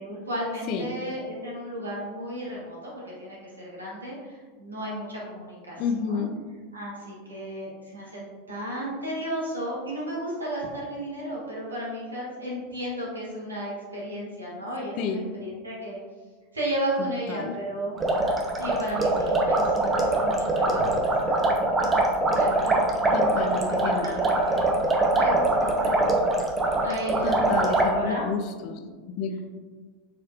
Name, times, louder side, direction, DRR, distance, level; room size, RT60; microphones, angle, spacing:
voice 1, 0.0-6.3 6.7-8.2 8.5-16.0 16.5-17.9 18.6-21.4 22.3-26.0 26.8-28.3 28.7-29.0, equal, 80° right, -4 dB, 1.3 m, -34 dB
voice 2, 5.8-6.4 15.0-15.2 17.0-17.5 23.1-24.2 27.2-28.8 29.1-29.4, left 5 dB, 45° left, 6 dB, 0.5 m, -30 dB
sound 1, 18.0-27.9, right 2 dB, 20° right, 0.7 m, -23 dB
6.5 x 3.3 x 2.5 m, 1.4 s
figure-of-eight pair, 85°, 0 cm